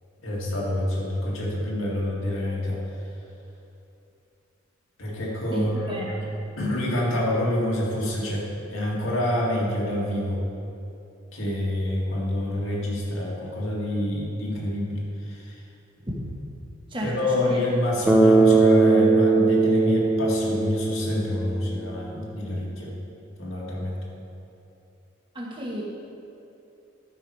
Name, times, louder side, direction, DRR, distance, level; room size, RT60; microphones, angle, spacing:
voice 1, 0.2-2.8 5.0-6.0 6.6-10.4 11.3-15.6 17.0-22.9 23.4-24.0, left 1 dB, 90° left, -4 dB, 2.3 m, -27 dB
voice 2, 5.5-6.1 16.0-16.3 16.9-17.6 25.3-25.8, equal, 25° right, -2 dB, 1.3 m, -32 dB
Bass guitar, 18.1-22.1, right 3 dB, 5° right, 0.6 m, -20 dB
12.5 x 6.0 x 4.7 m, 2.8 s
head